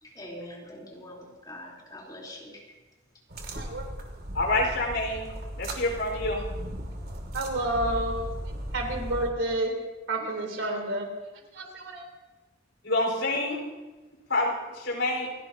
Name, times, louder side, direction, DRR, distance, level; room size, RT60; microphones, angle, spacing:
voice 1, 0.0-2.6, left 1 dB, 20° left, -3 dB, 3.6 m, -43 dB
sound 1, 3.3-9.3, right 1 dB, 55° right, 2.5 m, -36 dB
voice 2, 3.5-3.9 7.3-8.3 8.7-9.7 10.1-11.1 11.5-12.1, right 1 dB, 75° right, 1 dB, 3.6 m, -29 dB
voice 3, 4.3-5.3 5.6-6.4 12.8-13.6 14.3-15.3, left 2 dB, 70° left, 0 dB, 4.7 m, -27 dB
28.5 x 16.5 x 2.8 m, 1.2 s
head